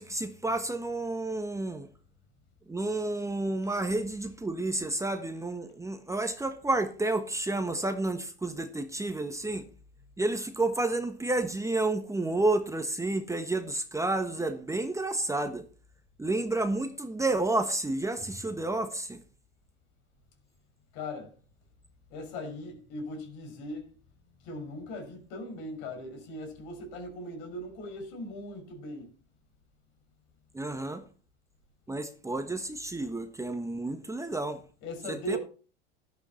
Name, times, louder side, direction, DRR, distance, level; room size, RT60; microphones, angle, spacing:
voice 1, 0.0-1.9 2.7-9.7 10.2-15.6 16.2-19.2 30.5-31.0 31.9-34.6 35.1-35.4, right 2 dB, 10° right, 1.4 m, -30 dB
voice 2, 20.9-21.3 22.1-23.9 24.4-29.1 34.8-35.4, left 1 dB, 65° left, 5.6 m, -39 dB
13.0 x 11.0 x 4.3 m
hypercardioid pair, 95°, 32 cm